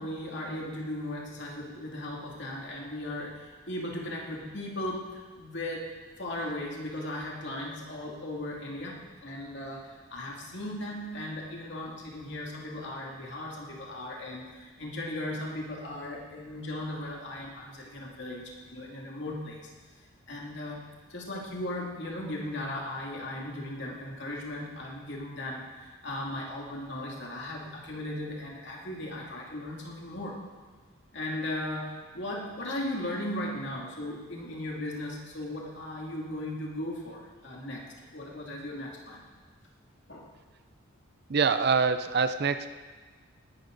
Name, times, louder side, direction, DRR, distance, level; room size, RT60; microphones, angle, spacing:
voice 1, 0.0-19.7 20.3-20.8 21.1-30.4 31.1-39.2 40.1-40.3, left 1 dB, 55° left, -2 dB, 2.6 m, -37 dB
voice 2, 41.3-42.8, right 5 dB, 50° right, 11 dB, 0.5 m, -25 dB
19.0 x 11.5 x 4.0 m, 1.4 s
head